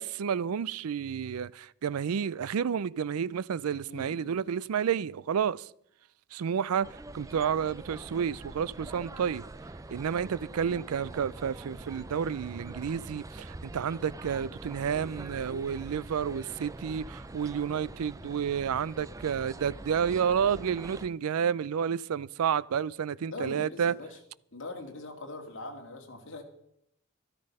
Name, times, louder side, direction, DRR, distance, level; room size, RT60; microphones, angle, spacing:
voice 1, 0.0-5.7 6.3-6.9 7.1-9.4 9.9-23.9, right 7 dB, 85° right, 0.4 m, -30 dB
voice 2, 3.8-4.4 10.6-10.8 23.3-24.2 24.5-26.4, left 2 dB, 60° left, 2.2 m, -42 dB
sound 1, 6.8-21.1, right 2 dB, 15° right, 0.4 m, -44 dB
13.0 x 13.0 x 5.4 m
head